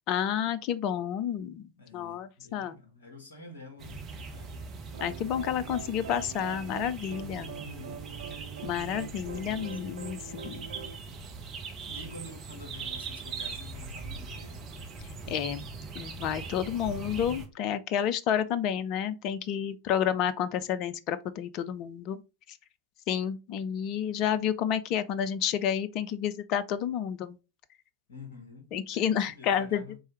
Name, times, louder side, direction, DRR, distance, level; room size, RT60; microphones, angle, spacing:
voice 1, 0.1-2.8 5.0-7.5 8.6-10.7 15.3-15.6 16.0-22.2 22.5-22.6 23.1-27.4 28.7-29.8, left 9 dB, 40° left, 0.4 m, -30 dB
voice 2, 1.8-4.7 7.4-8.0 8.9-9.8 11.9-14.7 28.1-30.0, left 3 dB, 65° left, 1.2 m, -48 dB
sound 1, 3.8-17.5, right 4 dB, 30° right, 0.8 m, -41 dB
sound 2, 4.9-11.0, right 8 dB, 60° right, 0.4 m, -43 dB
4.7 x 3.2 x 3.0 m
figure-of-eight pair, 90°, 0 cm